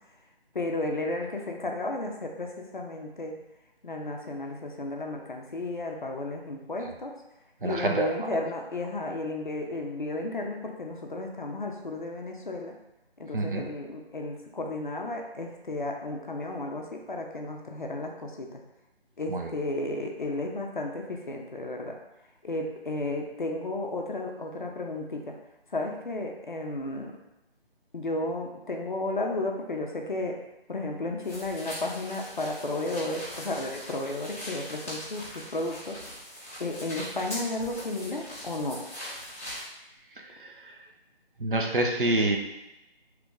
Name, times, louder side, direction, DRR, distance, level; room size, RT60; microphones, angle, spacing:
voice 1, 0.5-3.4 3.8-7.1 7.6-12.7 13.2-18.6 19.2-22.0 22.4-25.3 25.7-27.1 27.9-30.4 30.7-36.0 36.6-38.8, left 2 dB, 50° left, 2 dB, 0.5 m, -33 dB
voice 2, 7.6-8.1 13.3-13.6 19.3-19.5 40.2-40.8 41.4-42.4, right 2 dB, 55° right, 2 dB, 0.5 m, -27 dB
sound 1, 31.2-39.7, equal, 15° left, 0.7 m, -41 dB
3.0 x 2.4 x 3.6 m, 0.96 s
figure-of-eight pair, 170°, 32 cm